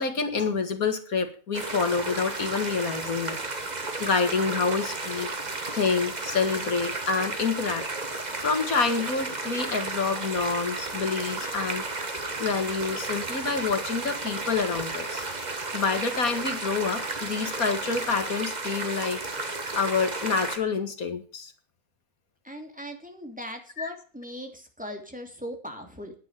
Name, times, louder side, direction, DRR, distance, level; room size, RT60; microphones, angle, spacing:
voice 1, 0.0-3.7 4.0-5.3 5.7-7.8 8.4-11.8 12.4-15.4 15.7-19.2 19.7-21.5 23.8-23.9, left 5 dB, 80° left, 7 dB, 2.5 m, -27 dB
sound 1, 1.5-20.6, right 3 dB, 30° right, 1.6 m, -33 dB
voice 2, 22.4-26.1, equal, 5° right, 3 dB, 3.0 m, -39 dB
10.5 x 9.5 x 8.4 m, 0.39 s
omnidirectional pair, 1.5 m